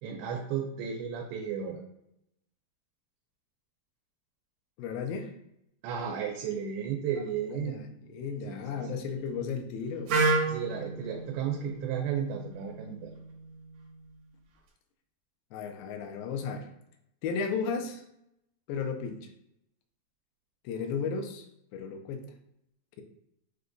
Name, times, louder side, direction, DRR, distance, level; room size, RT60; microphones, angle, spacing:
voice 1, 0.0-1.8 5.8-7.8 8.5-9.0 10.5-13.1, right 8 dB, 90° right, 0 dB, 2.5 m, -34 dB
voice 2, 4.8-5.3 7.5-10.2 15.5-16.7 17.2-18.0 18.7-19.3 20.6-21.5 21.7-22.3, left 5 dB, 85° left, 5 dB, 2.3 m, -34 dB
Wind instrument woodwind instrument, 10.1-14.0, right 3 dB, 70° right, 1.6 m, -32 dB
6.4 x 2.2 x 2.5 m, 0.80 s
omnidirectional pair, 4.3 m